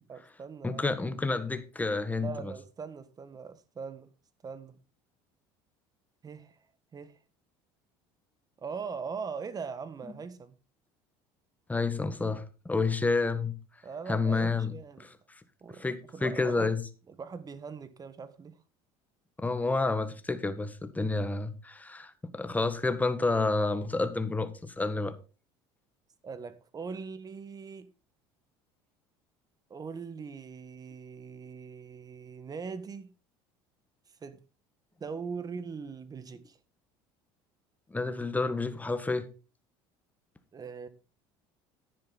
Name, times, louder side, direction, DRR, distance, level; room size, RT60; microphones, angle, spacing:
voice 1, 0.1-1.0 2.2-4.1 4.4-4.8 6.2-6.6 6.9-7.1 8.6-10.5 13.8-15.1 15.6-15.9 16.1-16.7 17.1-18.6 26.2-27.9 29.7-33.1 34.2-34.4 35.0-36.6 40.5-40.9, right 5 dB, 30° right, 1.5 m, -41 dB
voice 2, 0.6-2.5 11.7-13.5 14.1-14.7 15.8-16.8 19.4-25.1 37.9-39.3, left 3 dB, 10° left, 1.7 m, -29 dB
11.0 x 10.0 x 4.1 m
supercardioid pair, 90°, 13 cm